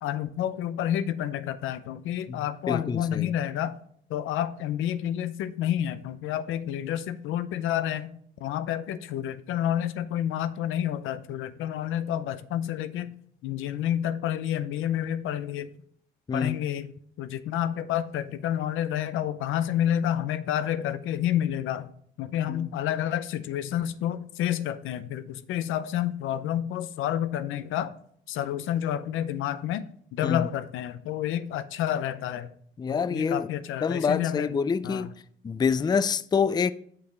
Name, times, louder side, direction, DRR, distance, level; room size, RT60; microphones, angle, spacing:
voice 1, 0.0-3.8 4.1-8.1 8.4-13.1 13.4-15.7 16.3-16.9 17.2-21.9 22.2-27.9 28.3-29.9 30.1-32.5 32.9-34.5 34.8-35.1, left 11 dB, 90° left, 0.6 m, -29 dB
voice 2, 2.3-3.3 16.3-16.6 22.5-22.7 30.2-30.5 32.8-33.5 33.8-35.1 35.4-36.7, left 6 dB, 20° left, 0.4 m, -26 dB
6.6 x 5.7 x 3.9 m
cardioid pair, 90°, 20 cm